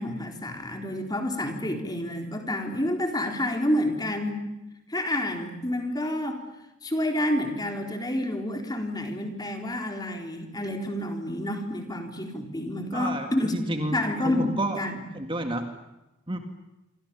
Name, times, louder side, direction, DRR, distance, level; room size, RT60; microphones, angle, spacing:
voice 1, 0.0-4.4 4.9-6.4 6.8-13.6 13.9-15.0, left 1 dB, 20° left, 4 dB, 3.9 m, -29 dB
voice 2, 12.9-14.8 15.1-15.7 16.3-16.4, right 1 dB, 25° right, 5 dB, 2.1 m, -30 dB
28.0 x 25.5 x 7.1 m, 0.97 s
head